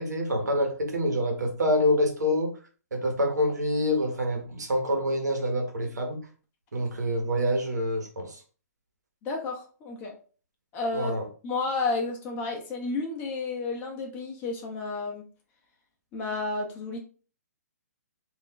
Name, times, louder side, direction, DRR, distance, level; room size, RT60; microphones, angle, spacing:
voice 1, 0.0-2.5 2.9-6.2 6.7-8.4 10.9-11.3, equal, 85° right, 3 dB, 1.0 m, -26 dB
voice 2, 9.2-10.2 10.7-11.1 11.4-15.2 16.1-17.0, left 3 dB, 20° left, 1 dB, 0.6 m, -31 dB
2.5 x 2.2 x 3.6 m, 0.39 s
hypercardioid pair, 150°, 9 cm